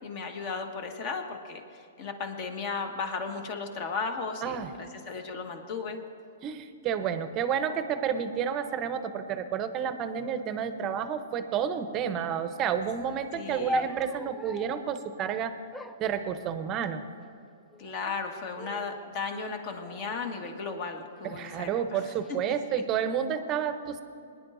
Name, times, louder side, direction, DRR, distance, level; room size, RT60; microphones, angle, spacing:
voice 1, 0.0-6.0 13.3-13.9 17.8-22.1 22.7-22.8, left 4 dB, 40° left, 5 dB, 1.5 m, -35 dB
voice 2, 6.4-15.6 16.0-17.0 21.2-24.0, right 8 dB, 25° right, 10 dB, 0.7 m, -30 dB
sound 1, 13.7-14.9 15.7-16.9 17.7-18.2 18.6-19.1 19.8-21.1 21.9-22.3, left 1 dB, 5° left, 0.3 m, -40 dB
22.0 x 10.5 x 2.6 m, 2.6 s
hypercardioid pair, 145°, 0 cm